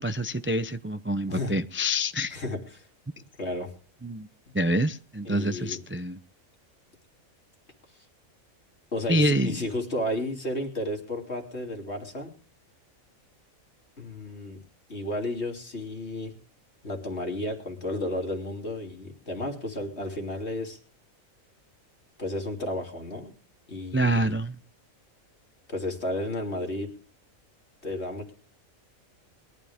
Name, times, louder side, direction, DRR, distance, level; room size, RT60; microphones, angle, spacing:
voice 1, 0.0-2.4 4.0-4.3 4.5-6.2 9.1-9.5 23.9-24.6, equal, 15° right, 0.5 m, -26 dB
voice 2, 2.3-2.9 3.4-3.7 5.2-5.8 8.9-12.3 14.0-14.6 14.9-16.3 16.8-20.8 22.2-23.3 23.7-24.4 25.7-27.0 27.8-28.3, left 1 dB, 50° left, 3.5 m, -32 dB
22.0 x 12.5 x 3.6 m
omnidirectional pair, 1.4 m